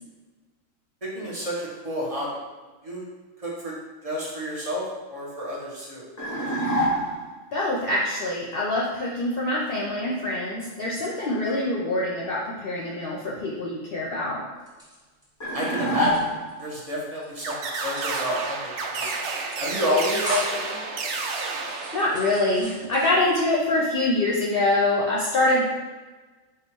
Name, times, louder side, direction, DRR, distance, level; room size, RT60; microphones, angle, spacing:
voice 1, 1.0-2.3 2.8-3.1 3.4-3.7 4.0-6.0 15.5-16.3 16.6-17.6 17.8-19.1 19.6-20.4 20.7-20.8, equal, 30° right, -5 dB, 1.0 m, -29 dB
sound 1, 6.2-7.4 15.4-16.7, equal, 15° left, 0.6 m, -26 dB
voice 2, 7.5-14.4 19.1-19.3 21.9-25.6, left 2 dB, 55° left, -4 dB, 0.7 m, -25 dB
sound 2, 14.6-15.6 15.9-16.9 17.2-17.5 18.0-18.5 18.8-19.2 19.5-19.6 19.9-20.7 21.2-23.4 23.8-24.4, equal, 5° right, 1.2 m, -38 dB
sound 3, 17.4-22.6, right 4 dB, 65° right, 0.8 m, -31 dB
4.3 x 2.4 x 4.5 m, 1.3 s
omnidirectional pair, 1.3 m